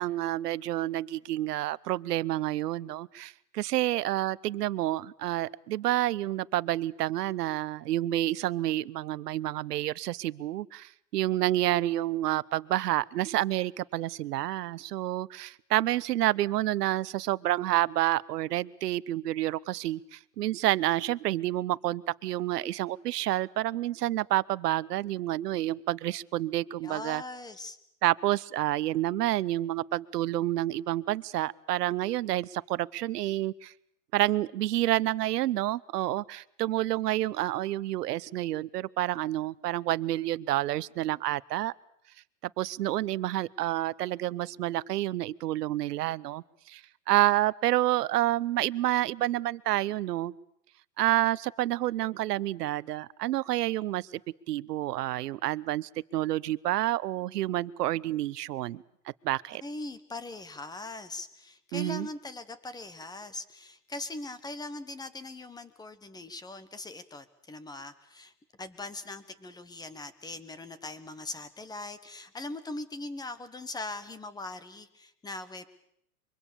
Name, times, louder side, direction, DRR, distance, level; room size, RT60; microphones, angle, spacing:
voice 1, 0.0-27.2 28.0-33.7 34.1-41.7 42.6-50.3 51.0-54.2 54.5-58.8 59.2-59.6 61.7-62.1, right 14 dB, 75° right, 19 dB, 0.9 m, -29 dB
voice 2, 26.8-27.8 59.6-68.3 68.6-75.7, left 2 dB, 10° left, 13 dB, 1.3 m, -41 dB
24.0 x 24.0 x 7.0 m, 0.73 s
hypercardioid pair, 135°, 48 cm